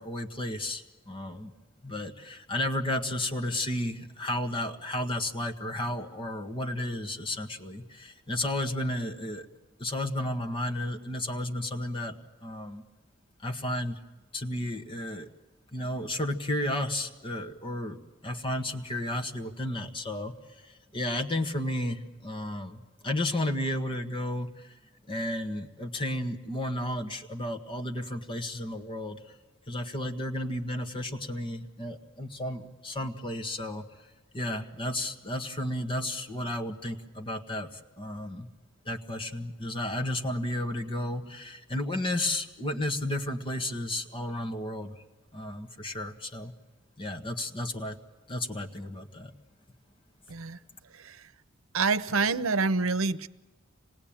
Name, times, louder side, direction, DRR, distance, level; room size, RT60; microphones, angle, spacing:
voice 1, 0.0-1.5 1.8-9.5 9.8-12.8 13.4-14.0 14.3-15.3 15.7-20.3 20.6-24.7 25.1-29.2 29.7-33.8 34.3-38.5 38.8-45.0 45.3-46.5 47.0-48.0 48.3-49.3, left 1 dB, 25° left, 4 dB, 1.6 m, -33 dB
voice 2, 50.3-50.6 50.9-51.3 51.7-53.3, right 4 dB, 85° right, 14 dB, 0.8 m, -27 dB
26.5 x 19.5 x 8.9 m, 1.2 s
head